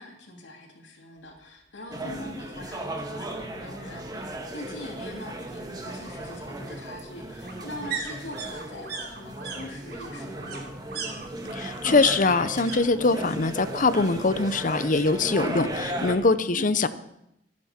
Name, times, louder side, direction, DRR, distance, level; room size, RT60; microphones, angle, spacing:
voice 1, 0.0-10.7 16.5-16.8, left 1 dB, 85° left, 0 dB, 2.9 m, -42 dB
sound 1, 1.9-16.1, right 1 dB, 20° right, 1.6 m, -36 dB
sound 2, 1.9-2.0 2.4-2.5 2.7-3.7 5.0-12.8 13.0-13.6 13.9-14.9 15.2-15.3, right 5 dB, 60° right, 2.9 m, -39 dB
voice 2, 11.5-16.9, left 3 dB, 45° left, 13 dB, 0.7 m, -23 dB
25.5 x 9.6 x 4.4 m, 0.80 s
head